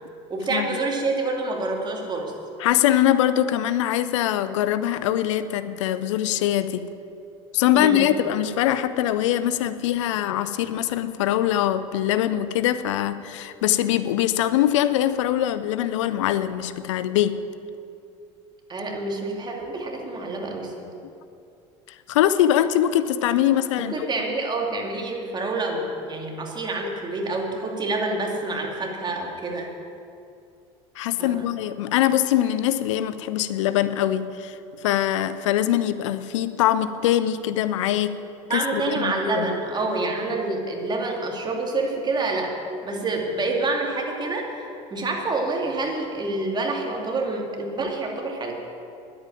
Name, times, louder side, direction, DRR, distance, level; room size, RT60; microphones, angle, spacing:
voice 1, 0.3-2.3 7.7-8.1 18.7-20.9 23.9-29.7 31.2-31.4 38.5-42.5 42.8-48.5, right 2 dB, 30° right, 0 dB, 2.6 m, -27 dB
voice 2, 2.6-6.8 7.5-17.4 21.9-24.1 31.0-38.2 38.5-39.5, left 12 dB, 85° left, 13 dB, 0.6 m, -23 dB
10.5 x 8.7 x 9.0 m, 2.6 s
supercardioid pair, 85°, 15 cm